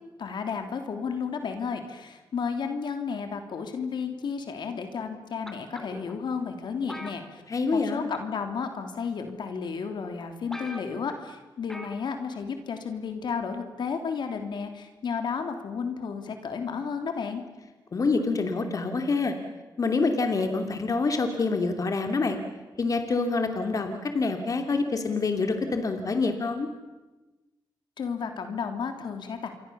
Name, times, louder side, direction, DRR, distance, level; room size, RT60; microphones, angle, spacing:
voice 1, 0.2-7.4 7.7-17.4 28.0-29.5, left 6 dB, 65° left, 6 dB, 3.2 m, -32 dB
sound 1, 5.5-6.1 6.9-7.8 8.1-8.4 9.3-9.4 9.9-10.0 10.2-10.3 10.5-11.2 11.7-12.0 12.3-12.4, equal, 5° left, 3.3 m, -41 dB
voice 2, 7.5-8.1 17.9-19.3 19.8-22.4 22.8-26.7, left 3 dB, 45° left, 5 dB, 2.8 m, -26 dB
28.5 x 23.5 x 7.1 m, 1.2 s
cardioid pair, 85°, 8 cm